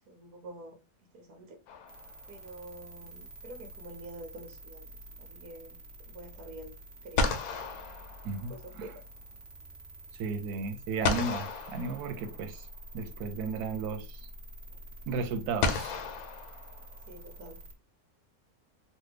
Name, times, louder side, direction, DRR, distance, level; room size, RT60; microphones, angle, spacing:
voice 1, 0.1-0.8 1.1-1.6 2.3-4.9 5.2-6.8 7.0-7.3 8.5-9.0 17.1-17.6, right 1 dB, 70° right, 1.2 m, -47 dB
sound 1, 1.7-2.5 6.6-6.7 7.1-8.9 11.0-12.6 14.0-14.1 15.6-17.2, left 4 dB, 85° left, 1.1 m, -33 dB
sound 2, 1.9-17.7, right 1 dB, 50° right, 0.9 m, -48 dB
voice 2, 10.2-12.7 12.9-14.3 15.1-16.0, right 4 dB, 90° right, 1.1 m, -34 dB
3.2 x 2.2 x 3.2 m
omnidirectional pair, 1.6 m